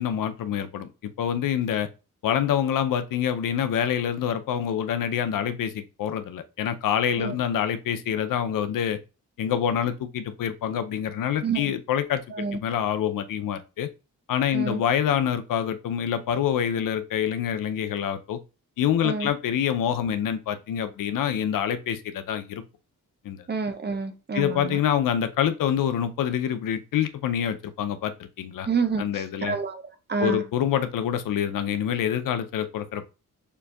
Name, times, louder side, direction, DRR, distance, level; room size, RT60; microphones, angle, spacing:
voice 1, 0.0-1.9 2.2-9.0 9.4-13.9 14.3-18.4 18.8-22.6 23.2-23.5 24.3-28.7 29.0-29.6 30.2-33.1, left 9 dB, 80° left, 0.5 m, -26 dB
voice 2, 11.4-11.7 12.3-12.6 14.5-14.8 19.0-19.3 23.5-24.8 28.7-30.4, right 5 dB, 30° right, 0.6 m, -28 dB
6.7 x 2.6 x 2.3 m
cardioid pair, 110°, 32 cm